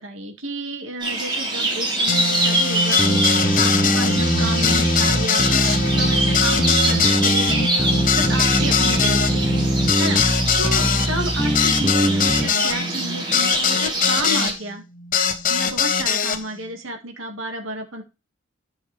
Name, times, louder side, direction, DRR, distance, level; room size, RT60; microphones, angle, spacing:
voice 1, 0.0-14.8 15.5-18.0, right 1 dB, 85° right, 4 dB, 2.0 m, -31 dB
sound 1, 1.0-14.5, right 1 dB, 25° right, 3.1 m, -25 dB
sound 2, 2.1-14.5 15.1-16.4, left 5 dB, 45° left, 1.1 m, -22 dB
sound 3, 3.0-12.5, right 1 dB, 5° right, 0.6 m, -22 dB
10.5 x 6.4 x 3.3 m, 0.28 s
head